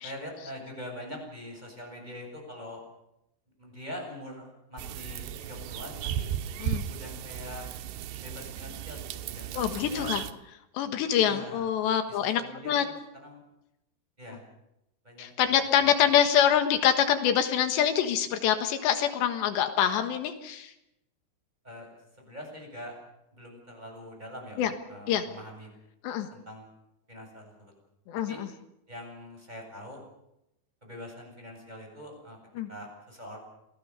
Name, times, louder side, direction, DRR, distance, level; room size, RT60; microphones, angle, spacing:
voice 1, 0.0-2.8 3.6-6.3 6.9-7.7 8.2-10.1 11.2-11.7 12.1-13.4 14.2-14.4 15.0-15.3 15.8-15.9 21.6-23.0 23.3-25.7 26.3-26.7 27.1-27.7 28.3-28.4 28.9-30.0 30.8-32.4 32.7-33.4, left 1 dB, 10° right, 1 dB, 7.4 m, -43 dB
sound 1, 4.8-10.3, right 10 dB, 75° right, 3.0 m, -35 dB
voice 2, 9.6-10.2 10.7-12.9 15.2-20.7 24.6-24.7 25.1-25.2 26.0-26.3 28.1-28.5 32.6-32.7, left 9 dB, 80° left, 8 dB, 3.7 m, -25 dB
27.5 x 19.0 x 7.1 m, 0.84 s
omnidirectional pair, 5.1 m